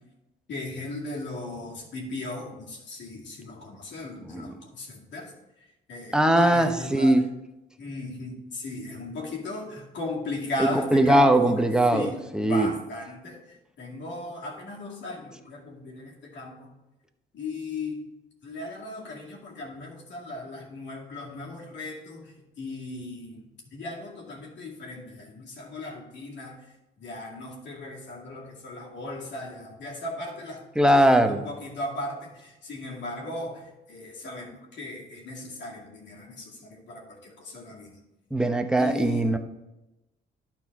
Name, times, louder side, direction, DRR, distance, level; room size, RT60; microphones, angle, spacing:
voice 1, 0.5-5.3 5.9-7.2 7.8-11.6 11.9-12.2 12.5-16.7 17.3-18.0 18.4-26.6 27.0-30.7 30.9-38.0 38.8-39.4, left 2 dB, 65° left, -2 dB, 2.2 m, -37 dB
voice 2, 4.2-4.6 6.1-7.2 10.6-12.7 30.8-31.4 38.3-39.4, right 1 dB, 5° right, 6 dB, 0.8 m, -21 dB
11.5 x 4.4 x 4.1 m, 0.99 s
cardioid pair, 90°, 20 cm